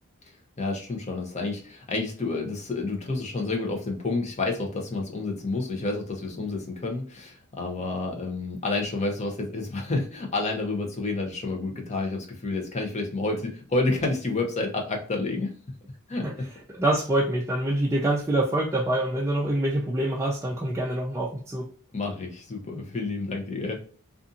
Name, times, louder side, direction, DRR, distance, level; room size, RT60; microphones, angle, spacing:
voice 1, 0.6-15.5 16.1-16.2 21.9-23.8, left 3 dB, 30° left, 1 dB, 0.7 m, -29 dB
voice 2, 16.7-21.7, right 1 dB, 15° right, -2 dB, 0.3 m, -25 dB
2.6 x 2.4 x 2.5 m, 0.42 s
head